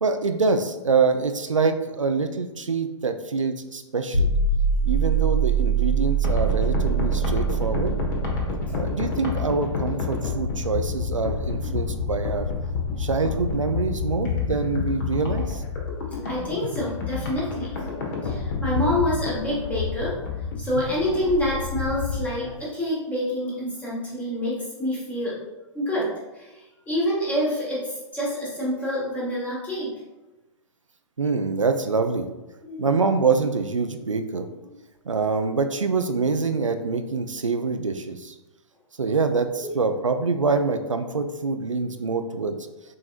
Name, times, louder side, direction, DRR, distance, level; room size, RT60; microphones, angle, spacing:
voice 1, 0.0-4.3 4.8-8.0 8.7-12.5 13.0-15.6 31.2-32.3 32.8-34.5 35.1-38.3 39.0-42.6, right 4 dB, 80° right, 7 dB, 0.4 m, -25 dB
sound 1, 4.1-9.2, right 6 dB, 80° left, 1.0 m, -23 dB
sound 2, 6.2-22.3, left 5 dB, 40° left, 1.0 m, -29 dB
voice 2, 16.0-20.2 20.6-25.4 25.7-26.5 26.9-29.9 32.6-32.9 39.0-39.1 39.6-39.7, left 1 dB, 10° left, -6 dB, 1.2 m, -27 dB
6.4 x 3.0 x 2.4 m, 1.1 s
figure-of-eight pair, 115°, 16 cm